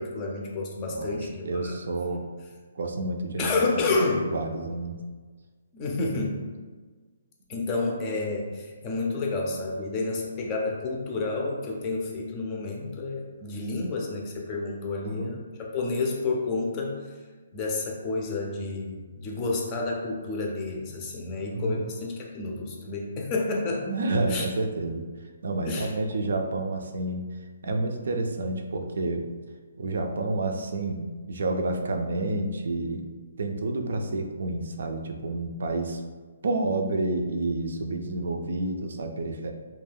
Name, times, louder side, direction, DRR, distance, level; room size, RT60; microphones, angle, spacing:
voice 1, 0.0-1.7 3.4-4.2 5.7-6.4 7.5-16.9 17.5-23.9 24.3-24.5 25.7-25.9, left 3 dB, 25° left, -1 dB, 0.5 m, -30 dB
voice 2, 0.9-2.2 2.8-3.8 4.2-5.0 15.0-15.3 21.5-21.9 23.9-25.0 25.4-27.3 27.6-29.3 29.8-33.0 33.4-36.0 36.4-39.5, right 2 dB, 70° right, 4 dB, 0.4 m, -29 dB
2.3 x 2.2 x 3.4 m, 1.4 s
hypercardioid pair, 155°, 0 cm